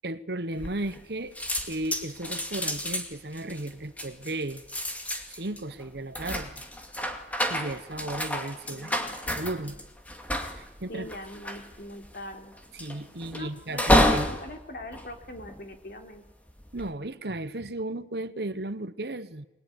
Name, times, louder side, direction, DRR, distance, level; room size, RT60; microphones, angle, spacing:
voice 1, 0.0-1.3 1.7-4.6 5.3-6.6 7.5-8.9 9.3-9.8 10.6-11.1 12.7-14.3 16.7-19.5, right 2 dB, 65° right, 1.3 m, -35 dB
sound 1, 0.6-1.1 1.4-15.9 16.5-16.9, left 1 dB, 10° left, 2.3 m, -30 dB
voice 2, 8.6-9.4 10.9-12.6 13.3-16.2, left 1 dB, 55° left, 3.6 m, -42 dB
24.0 x 21.5 x 9.9 m
head